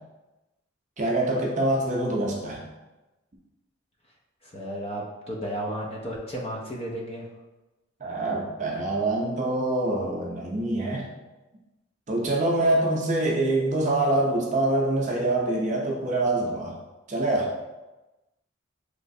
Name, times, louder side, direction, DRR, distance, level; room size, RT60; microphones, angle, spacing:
voice 1, 1.0-2.7 8.0-11.1 12.1-16.7 17.1-17.5, right 2 dB, 35° right, -2 dB, 0.5 m, -25 dB
voice 2, 4.4-7.3, equal, 30° left, -1 dB, 0.4 m, -33 dB
3.1 x 2.9 x 2.6 m, 1.1 s
head